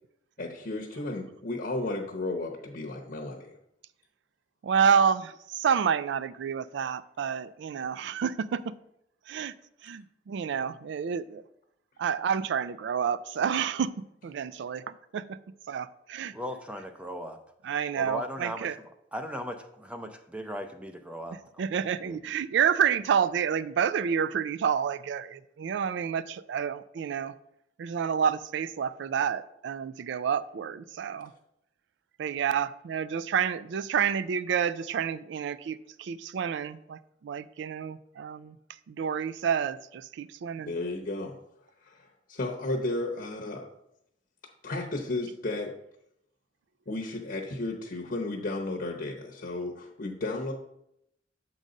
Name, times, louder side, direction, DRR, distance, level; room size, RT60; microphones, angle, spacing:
voice 1, 0.4-3.6 40.6-41.3 41.8-43.7 44.6-45.7 46.9-50.5, left 2 dB, 50° left, 1 dB, 0.8 m, -33 dB
voice 2, 4.6-8.8 9.3-9.5 9.8-11.4 12.0-15.4 15.7-16.3 17.6-18.8 21.3-27.3 27.8-31.3 32.2-38.6 38.9-40.7, right 7 dB, 70° right, 16 dB, 0.3 m, -29 dB
voice 3, 16.3-17.4 18.0-18.7 19.1-21.4 22.0-22.2, equal, 5° right, 6 dB, 0.5 m, -37 dB
7.3 x 3.9 x 5.1 m, 0.78 s
head